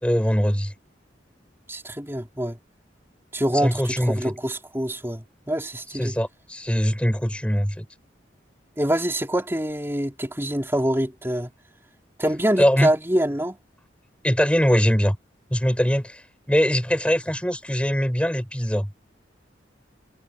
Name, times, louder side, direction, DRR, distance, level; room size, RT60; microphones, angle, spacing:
voice 1, 0.0-0.7 3.6-4.3 6.0-7.9 12.6-12.9 14.2-15.2 15.5-16.2 16.5-18.9, equal, 5° left, 4.1 m, -22 dB
voice 2, 1.7-2.6 3.3-6.1 8.8-11.5 12.2-13.6, right 1 dB, 15° right, 3.6 m, -25 dB
head